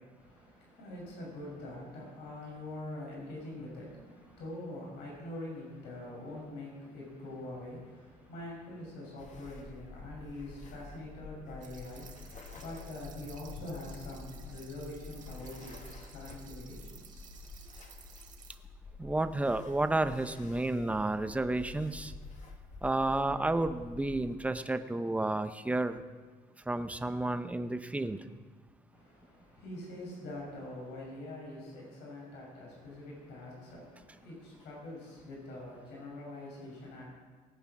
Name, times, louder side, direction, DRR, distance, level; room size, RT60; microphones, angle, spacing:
voice 1, 0.2-17.4 28.9-37.1, left 1 dB, 85° left, -3 dB, 5.8 m, -44 dB
sound 1, 9.2-24.4, left 4 dB, 45° left, 1.8 m, -49 dB
sound 2, 11.6-18.5, right 7 dB, 50° right, 1.8 m, -55 dB
voice 2, 19.0-22.1 22.8-26.0 26.7-28.2, right 2 dB, 10° right, 9 dB, 0.8 m, -31 dB
19.5 x 8.3 x 6.0 m, 1.4 s
cardioid pair, 110°, 17 cm